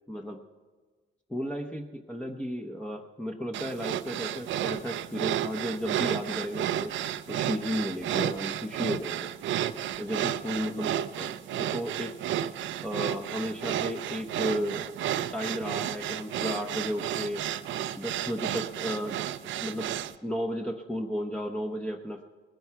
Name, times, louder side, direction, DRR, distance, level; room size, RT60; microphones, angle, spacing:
voice 1, 0.1-0.4 1.3-6.9 7.3-9.3 10.0-12.2 12.8-17.4 18.0-19.2 19.6-19.9 20.2-22.2, equal, 5° left, 1 dB, 0.9 m, -34 dB
sound 1, 3.5-20.1, right 11 dB, 75° right, 0.5 m, -32 dB
19.5 x 10.5 x 4.7 m, 1.4 s
cardioid pair, 90°, 20 cm